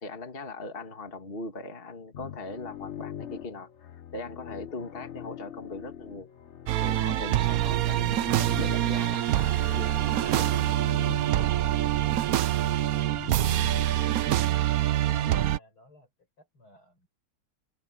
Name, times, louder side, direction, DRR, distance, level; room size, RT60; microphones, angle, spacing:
voice 1, 0.0-6.3 6.8-10.6 11.2-11.8 13.7-13.9, left 2 dB, 25° left, 2.1 m, -40 dB
sound 1, 2.1-15.5, left 10 dB, 60° left, 0.7 m, -43 dB
sound 2, 6.7-15.6, right 13 dB, 80° right, 0.7 m, -25 dB
Trumpet, 6.9-10.8, equal, 5° left, 3.1 m, -51 dB
voice 2, 12.9-13.3 14.8-16.1 16.4-17.1, left 1 dB, 75° left, 8.7 m, -58 dB
omnidirectional pair, 2.3 m